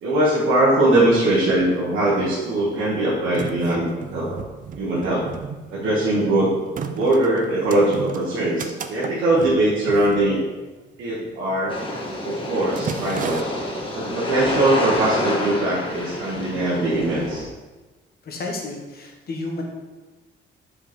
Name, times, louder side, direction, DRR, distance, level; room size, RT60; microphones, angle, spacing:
voice 1, 0.0-4.4 4.7-5.3 5.7-6.5 6.9-10.4 11.0-11.8 12.2-13.5 13.9-17.5, right 1 dB, 85° right, -6 dB, 1.3 m, -21 dB
sound 1, 0.9-1.0 1.2-2.0 2.7-11.0 11.2-11.5 11.8-12.2 12.4-13.4, right 6 dB, 40° right, 0.5 m, -34 dB
sound 2, 11.7-17.4, left 1 dB, 25° left, 1.5 m, -28 dB
voice 2, 18.2-19.6, left 2 dB, 50° left, 0 dB, 1.5 m, -31 dB
5.1 x 5.0 x 4.3 m, 1.2 s
cardioid pair, 90°, 20 cm